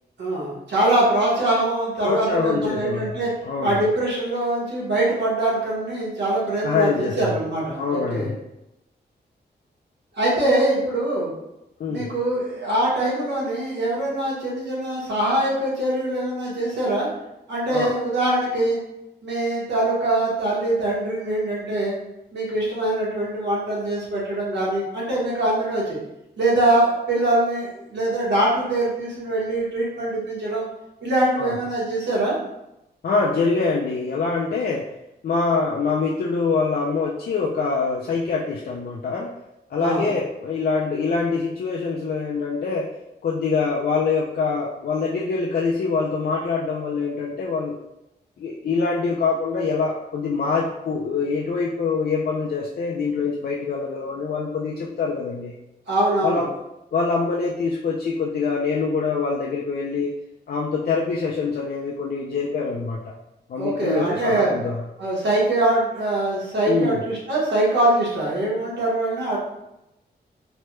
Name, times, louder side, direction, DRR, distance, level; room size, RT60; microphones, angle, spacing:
voice 1, 0.2-3.3 3.6-8.3 10.2-11.3 11.9-17.1 17.5-18.8 19.2-21.9 22.3-26.0 26.4-30.6 31.0-32.4 39.8-40.1 55.9-56.4 63.6-64.5 65.0-69.4, right 1 dB, 85° right, -6 dB, 1.1 m, -23 dB
voice 2, 2.0-3.1 3.4-3.8 6.6-7.4 7.8-8.3 11.8-12.1 17.7-17.9 31.4-31.6 33.0-34.9 35.2-39.3 39.7-42.9 43.2-47.7 48.4-55.5 56.2-56.5 56.9-60.1 60.5-63.1 63.5-64.8 66.7-67.0, left 4 dB, 60° left, -3 dB, 0.4 m, -24 dB
3.2 x 2.2 x 3.0 m, 0.90 s
wide cardioid pair, 105°, 18 cm